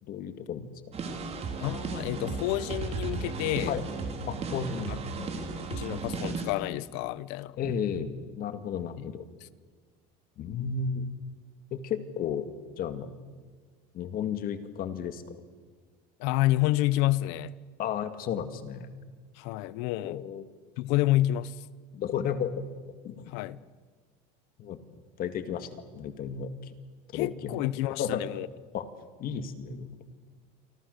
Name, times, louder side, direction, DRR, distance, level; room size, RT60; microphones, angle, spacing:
voice 1, 0.0-0.7 3.7-3.8 4.3-5.3 7.6-9.2 10.4-11.1 11.7-12.5 12.8-13.1 13.9-15.2 17.8-18.9 20.0-20.4 21.9-22.6 23.0-23.3 24.6-24.8 25.2-26.7 27.1-27.7 28.0-28.4 28.7-28.9 29.2-30.0, left 7 dB, 45° left, 10 dB, 2.1 m, -33 dB
sound 1, 0.9-6.5, right 4 dB, 30° right, 3.6 m, -35 dB
voice 2, 1.6-3.8 4.9-5.3 5.7-7.6 9.0-9.1 16.2-17.5 19.3-20.2 20.8-21.7 23.3-23.6 27.1-28.5, left 16 dB, 80° left, 19 dB, 1.0 m, -29 dB
29.0 x 24.5 x 6.8 m, 1.5 s
cardioid pair, 135°, 20 cm